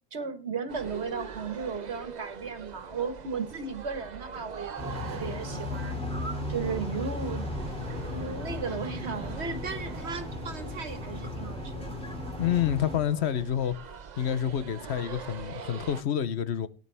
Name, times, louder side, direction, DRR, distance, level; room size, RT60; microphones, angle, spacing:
voice 1, 0.1-6.0 6.5-7.5 8.0-12.0, right 5 dB, 75° right, 1.8 m, -35 dB
sound 1, 0.7-16.0, right 6 dB, 45° right, 0.7 m, -43 dB
sound 2, 4.8-13.0, left 1 dB, 5° left, 2.6 m, -36 dB
voice 2, 12.4-13.7 14.2-16.7, left 9 dB, 75° left, 1.1 m, -28 dB
18.0 x 9.8 x 3.4 m
omnidirectional pair, 1.1 m